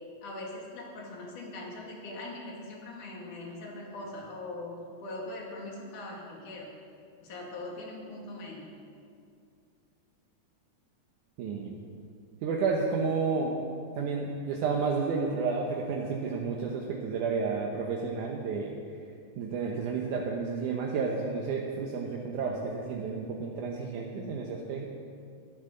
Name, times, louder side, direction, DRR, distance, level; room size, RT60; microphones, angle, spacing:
voice 1, 0.2-4.7 5.0-6.7 7.2-8.7, left 2 dB, 80° left, -2 dB, 3.8 m, -41 dB
voice 2, 11.4-11.8 12.4-13.6 14.0-18.7 19.4-24.9, right 4 dB, 80° right, -1 dB, 2.5 m, -31 dB
12.5 x 11.5 x 6.6 m, 2.3 s
omnidirectional pair, 3.5 m